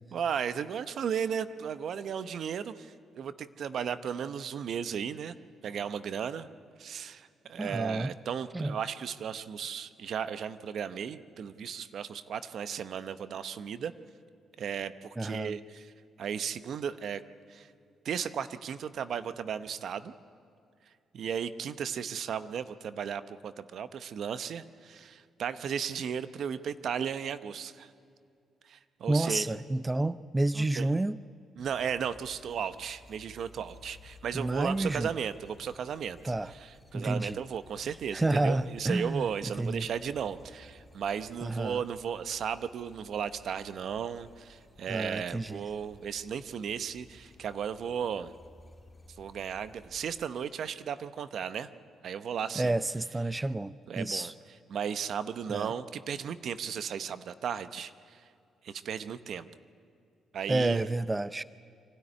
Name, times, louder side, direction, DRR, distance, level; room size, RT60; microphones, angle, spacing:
voice 1, 0.1-5.3 5.6-6.5 6.8-13.9 14.6-15.9 16.2-17.2 17.5-17.7 18.0-20.1 21.1-27.9 28.6-29.5 30.5-30.9 31.6-36.2 36.5-48.3 49.2-51.7 52.0-52.7 53.9-54.3 54.7-58.2 58.6-59.5 60.3-60.8, right 7 dB, 65° right, 0.8 m, -35 dB
voice 2, 7.6-8.1 8.5-8.8 15.2-15.5 29.1-31.2 34.3-35.1 36.2-36.5 36.9-37.4 38.1-39.2 39.6-39.9 41.4-41.8 44.9-45.6 52.6-54.3 55.5-55.7 60.5-61.4, right 2 dB, 20° right, 0.5 m, -30 dB
sound 1, 31.6-50.3, left 1 dB, 10° left, 2.8 m, -56 dB
25.0 x 12.5 x 9.8 m
supercardioid pair, 65°, 0 cm